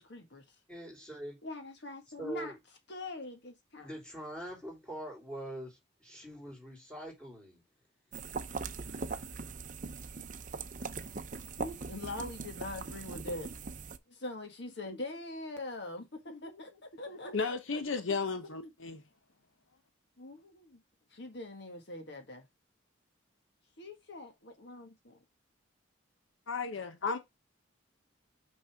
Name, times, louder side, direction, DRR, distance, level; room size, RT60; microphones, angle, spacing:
voice 1, 0.0-0.5 1.4-2.5 2.9-3.9 11.6-13.6 14.1-18.0 18.4-18.7 20.2-20.8 21.1-22.4 23.8-25.2, left 2 dB, 60° left, 1.6 m, -43 dB
voice 2, 0.7-1.4 2.2-2.6 3.8-7.6 8.8-9.4, right 1 dB, 5° left, 3.5 m, -44 dB
sound 1, 8.1-14.0, right 4 dB, 40° right, 0.6 m, -41 dB
voice 3, 17.3-19.0 26.5-27.2, left 4 dB, 75° left, 0.9 m, -34 dB
6.4 x 5.4 x 3.5 m
head